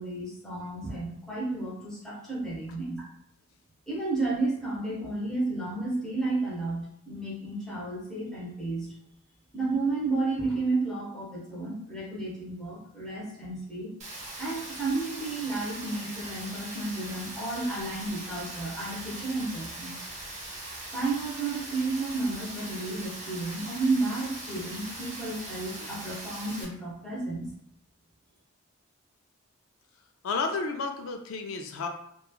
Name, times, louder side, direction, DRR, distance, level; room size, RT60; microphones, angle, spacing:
voice 1, 0.0-3.1 3.9-8.9 9.5-13.9 14.4-19.9 20.9-27.6, right 3 dB, 5° left, -6 dB, 0.8 m, -32 dB
Rain, 14.0-26.6, right 1 dB, 35° right, 0.7 m, -40 dB
voice 2, 30.2-31.9, left 4 dB, 75° left, 4 dB, 0.3 m, -31 dB
3.0 x 2.2 x 2.3 m, 0.71 s
head